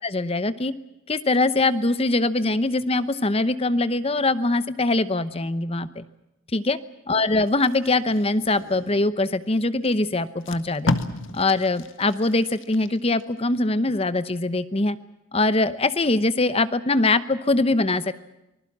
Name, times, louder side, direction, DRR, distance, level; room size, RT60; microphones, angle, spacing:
voice 1, 0.0-0.7 1.1-6.0 6.5-6.8 7.1-10.9 11.3-15.0 15.3-18.1, left 2 dB, 30° left, 14 dB, 0.8 m, -22 dB
Packing tape duct tape, 7.5-9.1 9.8-9.9 10.3-13.2 13.7-13.9, left 2 dB, 65° left, 1.7 m, -32 dB
25.0 x 20.5 x 7.3 m, 0.90 s
head